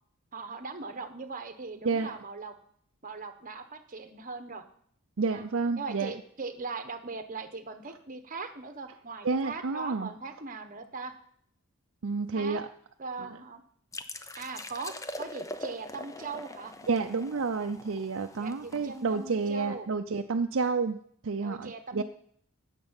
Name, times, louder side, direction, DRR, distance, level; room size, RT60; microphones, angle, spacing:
voice 1, 0.3-2.6 3.0-4.6 5.3-5.4 5.7-11.1 12.3-12.6 13.0-13.6 14.3-16.7 18.4-19.9 21.4-22.0, right 4 dB, 40° right, 8 dB, 1.1 m, -40 dB
voice 2, 5.2-6.1 9.2-10.1 12.0-12.7 16.9-21.0 21.2-22.0, right 4 dB, 60° right, 6 dB, 0.5 m, -30 dB
sound 1, 13.9-19.5, left 1 dB, 15° left, 0.6 m, -42 dB
9.4 x 6.8 x 8.8 m, 0.64 s
head